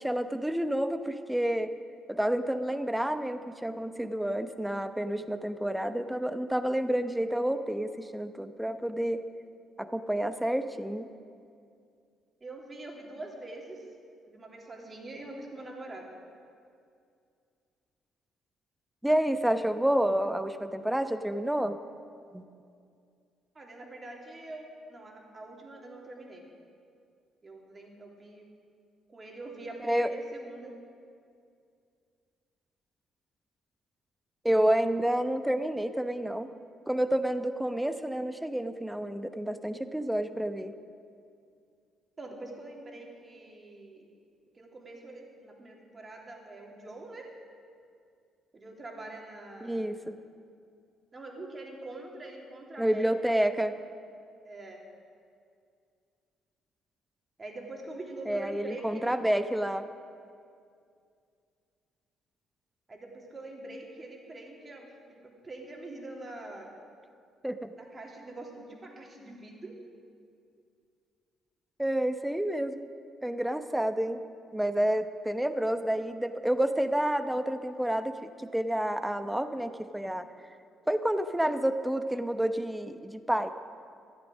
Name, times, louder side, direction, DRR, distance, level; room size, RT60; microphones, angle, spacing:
voice 1, 0.0-1.7 2.1-9.2 9.8-11.1 19.0-21.8 22.3-22.4 29.8-30.1 34.4-36.5 36.9-40.7 49.6-50.2 52.8-53.7 58.3-59.9 67.4-67.7 71.8-72.9 73.2-74.2 74.5-80.3 80.9-83.5, right 1 dB, 5° right, 10 dB, 0.9 m, -29 dB
voice 2, 12.4-13.9 14.3-16.1 23.5-26.5 27.4-28.5 29.1-30.8 42.2-44.1 44.5-47.3 48.5-49.8 51.1-53.4 54.4-54.8 57.4-59.1 62.9-66.7 67.8-69.8, right 2 dB, 30° right, 0 dB, 3.2 m, -44 dB
14.0 x 13.0 x 6.3 m, 2.3 s
figure-of-eight pair, 45°, 0 cm